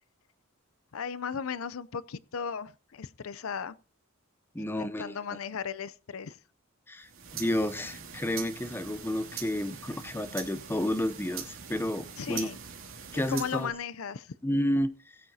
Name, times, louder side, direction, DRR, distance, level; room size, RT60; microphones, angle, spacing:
voice 1, 0.9-3.8 4.6-6.4 12.2-12.6 13.3-14.3, left 6 dB, 85° left, 0.6 m, -36 dB
voice 2, 4.5-5.2 6.9-12.5 13.1-13.7 14.4-14.9, left 1 dB, 10° left, 0.7 m, -31 dB
sound 1, 7.0-13.7, right 7 dB, 70° right, 2.6 m, -43 dB
20.5 x 8.8 x 2.8 m
head